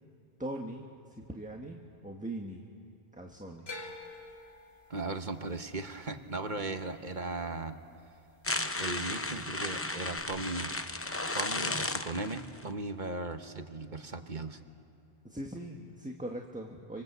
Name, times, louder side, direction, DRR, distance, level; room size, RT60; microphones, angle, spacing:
voice 1, 0.4-2.6 3.1-3.7 6.5-6.8 15.2-17.0, right 1 dB, 5° right, 1 dB, 1.4 m, -41 dB
sound 1, 3.7-7.9 8.1-8.8 10.2-10.3, left 2 dB, 70° left, 2.6 m, -48 dB
voice 2, 4.9-7.8 8.8-10.7 11.3-14.6, right 3 dB, 45° right, 7 dB, 1.3 m, -37 dB
sound 2, 8.4-12.6, left 2 dB, 15° left, 0.6 m, -34 dB
26.0 x 25.0 x 8.1 m, 2.5 s
omnidirectional pair, 1.1 m